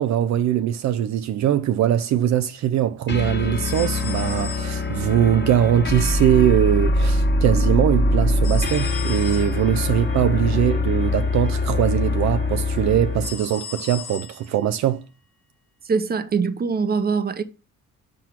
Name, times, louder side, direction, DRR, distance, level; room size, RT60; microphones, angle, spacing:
voice 1, 0.0-15.0, right 11 dB, 65° right, 0.5 m, -21 dB
sound 1, 3.1-13.4, left 2 dB, 40° left, 1.5 m, -23 dB
sound 2, 3.6-5.2 8.4-9.7 13.2-14.6, left 7 dB, 80° left, 1.6 m, -36 dB
voice 2, 15.8-17.4, right 5 dB, 30° right, 0.8 m, -23 dB
6.2 x 4.4 x 5.9 m
cardioid pair, 90°, 30 cm